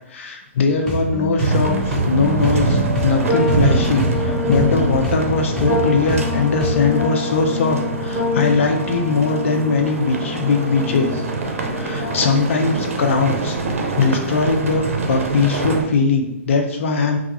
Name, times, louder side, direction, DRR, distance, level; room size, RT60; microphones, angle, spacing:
voice 1, 0.1-1.8 2.1-11.2 11.7-13.6 14.0-17.2, left 4 dB, 70° left, 4 dB, 0.5 m, -20 dB
sound 1, 0.8-7.1, equal, 10° left, 0.8 m, -26 dB
sound 2, 1.4-15.8, right 3 dB, 80° right, 0.5 m, -24 dB
sound 3, 2.5-12.4, left 3 dB, 35° right, 1.1 m, -27 dB
2.3 x 2.3 x 2.9 m, 0.85 s
hypercardioid pair, 120°, 7 cm